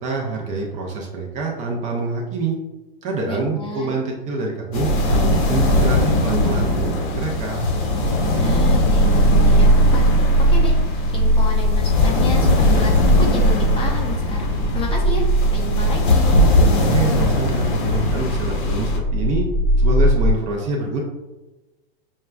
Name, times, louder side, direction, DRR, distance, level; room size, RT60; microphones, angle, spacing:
voice 1, 0.0-2.5 3.0-7.7 16.8-19.4 19.8-21.0, right 3 dB, 25° right, -1 dB, 0.5 m, -26 dB
voice 2, 3.3-3.9 8.4-10.1 10.5-10.7 11.1-16.4, left 3 dB, 20° left, 0 dB, 0.6 m, -31 dB
sound 1, 4.7-19.0, left 1 dB, 55° left, 0.9 m, -20 dB
sound 2, 8.5-20.3, right 1 dB, 65° right, 0.7 m, -19 dB
6.2 x 2.2 x 2.2 m, 1.1 s
hypercardioid pair, 130°, 29 cm